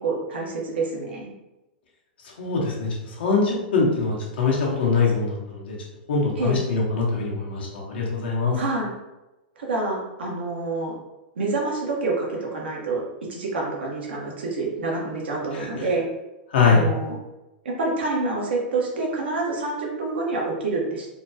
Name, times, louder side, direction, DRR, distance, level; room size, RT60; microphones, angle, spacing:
voice 1, 0.0-1.3 6.4-6.6 8.6-8.9 9.6-10.9 11.3-13.0 13.3-16.0 16.7-17.1 17.6-21.1, right 3 dB, 85° right, -3 dB, 1.2 m, -27 dB
voice 2, 2.4-5.8 6.1-8.6 15.5-15.9 16.5-16.9, left 4 dB, 75° left, -3 dB, 1.2 m, -23 dB
4.3 x 2.2 x 2.8 m, 1.0 s
hypercardioid pair, 120°, 6 cm